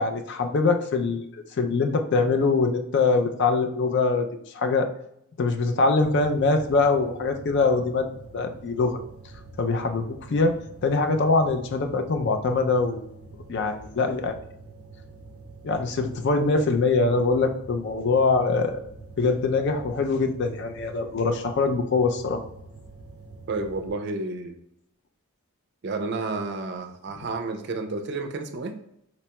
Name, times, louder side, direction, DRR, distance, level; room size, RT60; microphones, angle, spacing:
voice 1, 0.0-4.3 4.5-4.9 5.4-8.1 8.3-9.0 9.6-10.6 10.8-13.1 13.5-14.4 15.6-18.8 19.2-22.4, left 3 dB, 50° left, 6 dB, 0.4 m, -23 dB
sound 1, 6.0-23.9, right 3 dB, 85° left, 1.2 m, -46 dB
voice 2, 23.5-24.5 25.8-28.8, right 3 dB, 50° right, 7 dB, 0.4 m, -31 dB
4.1 x 2.2 x 2.9 m, 0.74 s
head